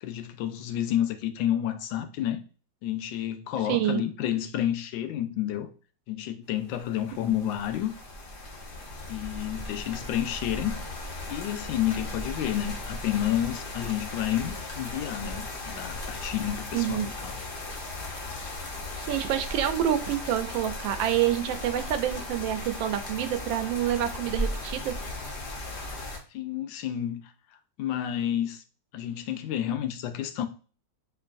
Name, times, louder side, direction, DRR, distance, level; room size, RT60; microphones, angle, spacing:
voice 1, 0.0-2.4 2.8-5.7 6.1-7.9 9.1-10.8 11.3-17.4 26.3-27.3 27.8-28.6 28.9-30.4, left 11 dB, 85° left, 1.3 m, -30 dB
voice 2, 3.7-4.0 16.7-17.1 19.0-24.9, right 11 dB, 85° right, 1.3 m, -27 dB
sound 1, 6.7-26.2, left 2 dB, 65° left, 0.5 m, -37 dB
4.5 x 3.2 x 2.5 m
omnidirectional pair, 2.0 m